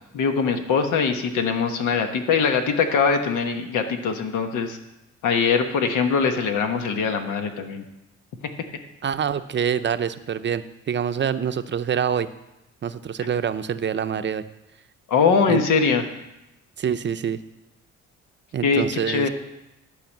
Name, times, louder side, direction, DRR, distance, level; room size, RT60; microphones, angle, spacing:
voice 1, 0.1-4.8 5.2-7.8 15.1-16.0 18.6-19.3, left 5 dB, 85° left, 6 dB, 1.3 m, -22 dB
voice 2, 9.0-12.3 12.8-14.4 15.5-15.6 16.8-17.4 18.5-19.3, right 8 dB, 40° right, 11 dB, 0.6 m, -26 dB
12.0 x 5.0 x 7.3 m, 0.93 s
cardioid pair, 90°, 30 cm